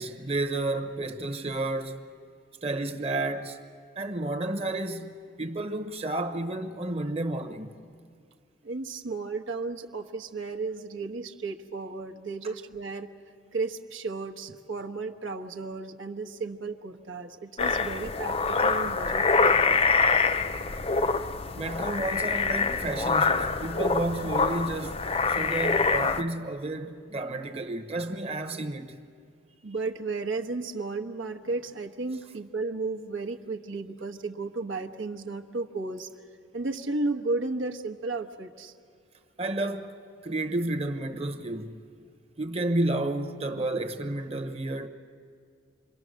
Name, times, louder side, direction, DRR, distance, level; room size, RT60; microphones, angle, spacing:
voice 1, 0.0-2.1 2.6-3.6 4.0-7.7 21.5-29.0 39.4-39.9 40.2-41.8 42.4-44.9, right 2 dB, 30° right, 1.0 m, -31 dB
voice 2, 8.6-13.1 13.5-19.8 29.6-36.1 36.5-38.7, right 3 dB, 80° right, 1.2 m, -34 dB
sound 1, 17.6-26.2, left 4 dB, 30° left, 0.5 m, -25 dB
28.0 x 23.0 x 6.4 m
head